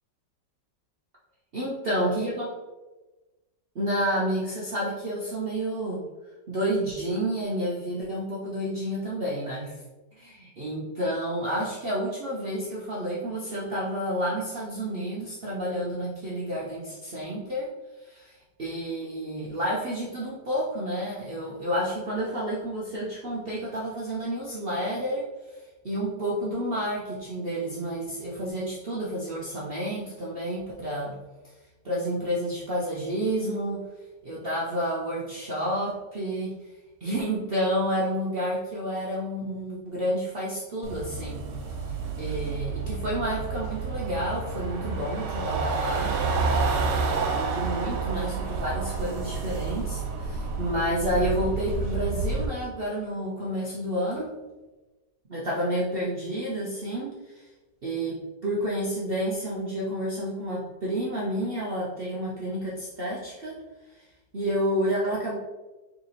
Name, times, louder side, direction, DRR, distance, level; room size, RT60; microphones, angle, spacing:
voice 1, 1.5-2.5 3.7-6.1 6.5-9.8 10.2-17.7 18.0-31.2 31.8-33.8 34.2-36.5 37.0-41.5 42.2-46.2 46.6-54.4 55.3-57.5 57.8-63.6 63.9-64.0 64.3-65.4, equal, 65° right, -6 dB, 0.5 m, -30 dB
sound 1, 40.8-52.5, right 4 dB, 80° right, 1.3 m, -29 dB
3.3 x 2.9 x 4.0 m, 1.1 s
omnidirectional pair, 1.9 m